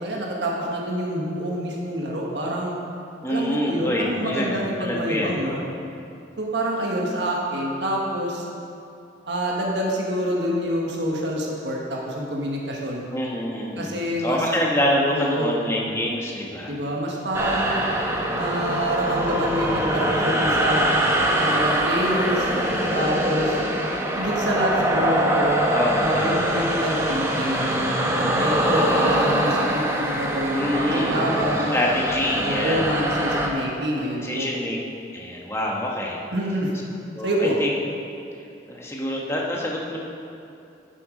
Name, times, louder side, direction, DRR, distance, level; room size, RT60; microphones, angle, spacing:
voice 1, 0.0-2.7 3.3-5.6 6.4-8.5 9.3-13.1 13.8-14.4 15.1-15.5 16.7-17.8 18.3-20.8 21.4-22.5 22.9-23.6 24.1-25.5 26.0-31.7 32.4-34.5 36.3-36.7 37.2-37.6, equal, 75° right, -2 dB, 1.4 m, -26 dB
voice 2, 3.2-5.7 13.1-16.7 25.7-26.5 30.5-32.9 34.2-34.8 35.1-36.2 37.1-37.7 38.7-40.0, left 1 dB, 15° left, -2 dB, 1.2 m, -26 dB
sound 1, 17.3-33.5, right 1 dB, 15° right, 0.9 m, -23 dB
11.5 x 7.1 x 5.0 m, 2.6 s
head